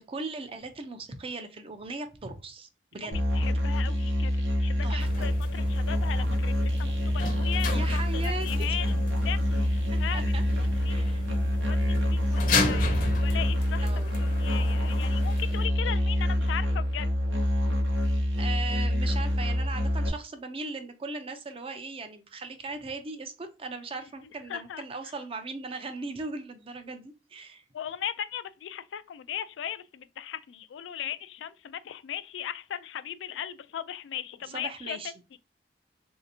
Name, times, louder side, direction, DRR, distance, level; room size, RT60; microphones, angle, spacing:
voice 1, 0.0-3.2 4.8-5.3 7.6-8.8 10.1-10.4 10.9-11.2 13.8-14.1 18.4-27.6 34.5-35.1, right 3 dB, 30° right, 0.5 m, -38 dB
voice 2, 3.0-4.3 4.6-11.1 11.6-13.9 14.2-17.1 24.5-24.8 27.7-35.0 35.3-35.4, left 10 dB, 85° left, 0.3 m, -38 dB
Musical instrument, 3.1-20.1, left 1 dB, 80° right, 0.8 m, -26 dB
sound 1, 5.0-15.7, left 3 dB, 50° left, 0.6 m, -35 dB
3.3 x 2.7 x 2.6 m
head